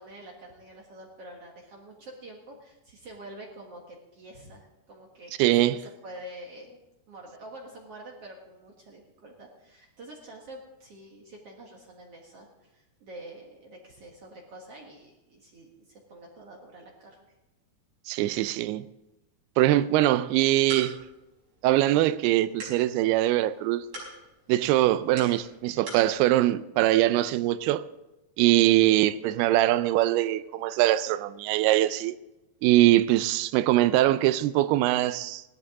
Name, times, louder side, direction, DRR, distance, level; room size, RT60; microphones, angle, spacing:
voice 1, 0.0-6.8 7.1-17.2, right 1 dB, 55° right, 1.7 m, -47 dB
voice 2, 5.4-5.8 18.1-18.9 19.6-21.0 21.6-23.9 24.5-27.9 28.4-32.2 32.6-35.4, right 15 dB, 80° right, 2.4 m, -22 dB
sound 1, 20.3-26.1, right 1 dB, 35° right, 6.3 m, -45 dB
17.5 x 13.0 x 3.7 m
omnidirectional pair, 4.8 m